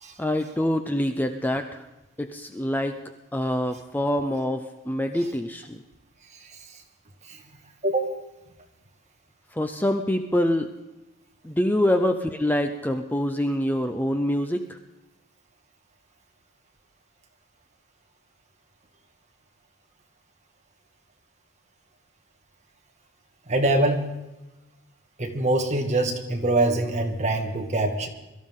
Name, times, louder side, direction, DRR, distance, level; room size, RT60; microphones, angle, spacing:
voice 1, 0.2-1.8 2.2-3.0 3.3-5.8 9.5-10.7 11.4-14.8, left 1 dB, 10° left, 6 dB, 0.5 m, -25 dB
voice 2, 6.3-6.8 7.3-7.4 7.8-8.1 23.5-24.2 25.2-28.1, right 2 dB, 35° right, 2 dB, 1.8 m, -24 dB
22.5 x 13.5 x 3.7 m, 1.0 s
head